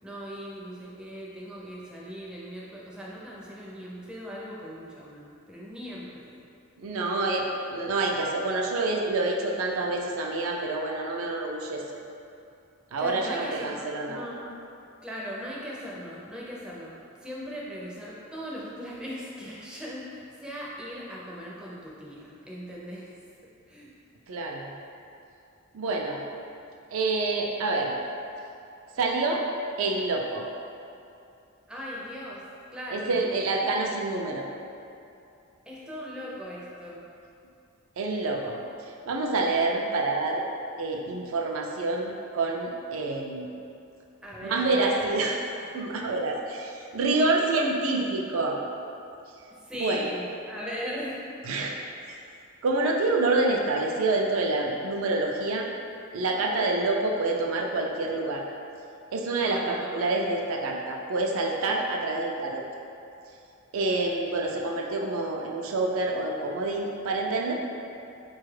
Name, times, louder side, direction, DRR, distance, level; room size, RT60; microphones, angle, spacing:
voice 1, 0.0-6.3 7.4-7.6 13.0-14.5 15.0-23.1 23.7-23.9 31.7-32.4 32.7-33.2 35.7-37.1 44.2-45.1 49.6-51.2 59.4-60.0, equal, 5° right, -6 dB, 0.4 m, -39 dB
voice 2, 6.8-7.4 7.7-11.8 12.9-14.3 24.3-24.7 25.7-26.2 26.9-27.9 29.0-29.4 29.8-30.5 32.9-34.4 38.0-40.5 40.8-43.5 44.4-45.4 45.7-48.6 49.8-50.0 51.5-51.7 52.1-52.2 52.6-55.7 56.1-58.4 59.1-62.6 63.7-67.5, right 2 dB, 70° right, 0 dB, 0.4 m, -27 dB
4.1 x 2.3 x 3.1 m, 2.6 s
head